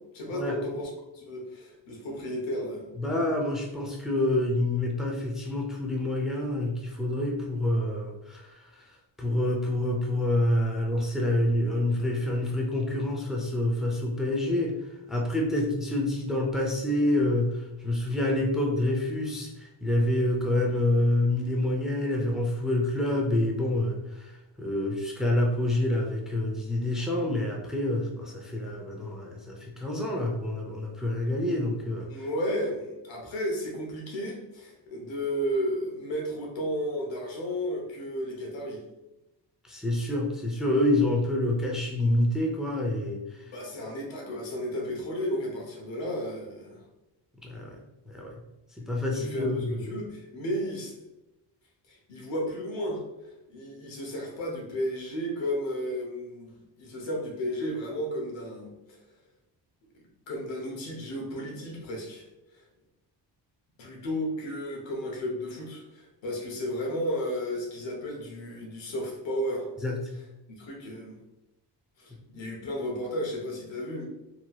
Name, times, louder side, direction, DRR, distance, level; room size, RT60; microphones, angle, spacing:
voice 1, 0.1-3.0 32.1-38.8 43.5-46.8 49.1-50.9 51.9-53.0 53.5-59.0 59.9-62.3 62.5-62.7 63.8-69.7 70.5-71.2 72.0-74.1, equal, 85° left, -1 dB, 1.0 m, -33 dB
voice 2, 3.0-8.4 9.2-14.8 15.1-17.6 17.8-24.0 24.6-32.1 39.7-43.2 47.4-47.8 48.1-48.4 48.8-49.7 69.8-70.0, left 1 dB, ahead, 0 dB, 0.5 m, -27 dB
3.0 x 2.8 x 2.3 m, 0.96 s
cardioid pair, 90°, 44 cm